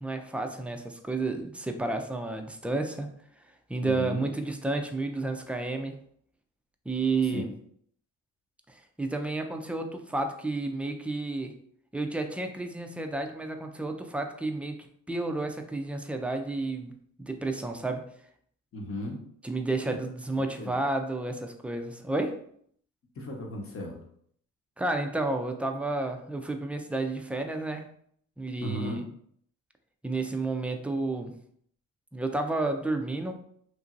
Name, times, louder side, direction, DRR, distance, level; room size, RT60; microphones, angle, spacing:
voice 1, 0.0-3.1 3.7-6.0 6.9-7.5 8.7-11.5 11.9-16.9 17.2-18.1 19.4-22.4 24.8-27.9 28.4-29.0 30.0-31.3 32.1-33.4, right 2 dB, 5° right, 4 dB, 0.3 m, -31 dB
voice 2, 3.8-4.2 7.3-7.4 18.7-19.2 20.6-20.8 23.2-24.0 28.6-29.0, left 1 dB, 45° left, 1 dB, 0.9 m, -35 dB
2.9 x 2.6 x 2.5 m, 0.64 s
cardioid pair, 90°, 30 cm